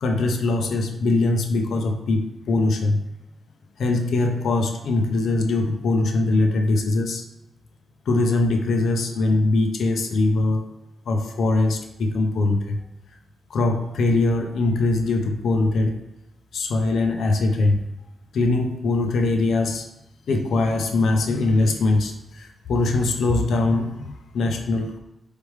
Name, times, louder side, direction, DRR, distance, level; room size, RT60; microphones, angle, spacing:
voice 1, 0.0-3.0 3.8-7.2 8.1-10.7 11.1-12.8 13.5-16.0 16.5-17.8 18.3-19.9 20.3-25.0, left 2 dB, 75° left, 4 dB, 0.5 m, -22 dB
4.2 x 3.3 x 3.1 m, 0.90 s
cardioid pair, 85°, 0 cm